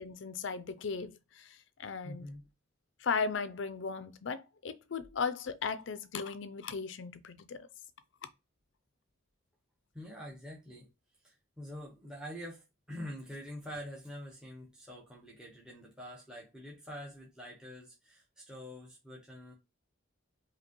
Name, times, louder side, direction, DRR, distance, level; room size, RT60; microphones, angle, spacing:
voice 1, 0.0-1.5 1.8-2.3 3.0-7.6, left 5 dB, 65° left, 0.5 m, -36 dB
voice 2, 2.0-2.4 9.9-10.9 11.2-19.5, equal, 5° right, 1.0 m, -46 dB
5.1 x 2.8 x 3.0 m
head